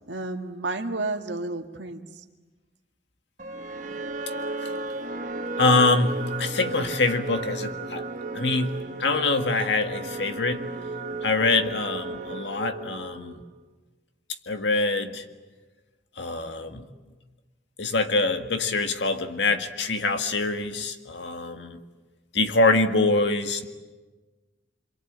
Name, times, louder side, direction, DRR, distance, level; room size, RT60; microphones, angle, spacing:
voice 1, 0.1-2.2, right 2 dB, 85° right, 5 dB, 1.8 m, -31 dB
sound 1, 3.4-13.6, right 3 dB, 45° right, 1.5 m, -34 dB
voice 2, 5.6-8.1 8.3-10.7 11.2-13.3 14.5-15.2 16.2-16.8 17.8-21.8 22.3-23.7, left 3 dB, 80° left, 7 dB, 1.8 m, -24 dB
27.0 x 23.5 x 8.8 m, 1.3 s
head